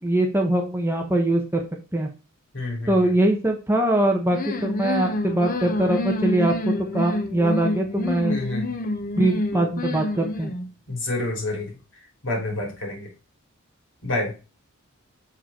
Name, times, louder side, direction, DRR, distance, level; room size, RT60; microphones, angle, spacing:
voice 1, 0.0-1.6 1.9-2.1 2.9-8.4 9.2-10.5, right 1 dB, 10° right, 2 dB, 1.1 m, -22 dB
voice 2, 2.5-3.1 8.3-8.7 10.9-11.8 12.2-13.1 14.0-14.3, left 2 dB, 60° left, 0 dB, 3.2 m, -28 dB
sound 1, 4.3-10.7, left 1 dB, 40° left, 0.8 m, -28 dB
6.9 x 5.0 x 4.4 m, 0.31 s
head